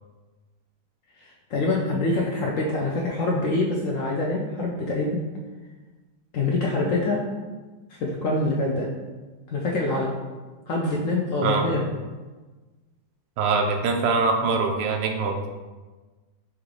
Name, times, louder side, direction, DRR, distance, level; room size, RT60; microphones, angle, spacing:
voice 1, 1.2-5.2 6.3-7.2 7.9-8.9 9.5-10.1 10.7-11.9, left 2 dB, 80° left, -2 dB, 0.7 m, -25 dB
voice 2, 13.4-15.5, right 4 dB, 75° right, 3 dB, 1.1 m, -23 dB
6.1 x 2.4 x 3.2 m, 1.3 s
omnidirectional pair, 1.9 m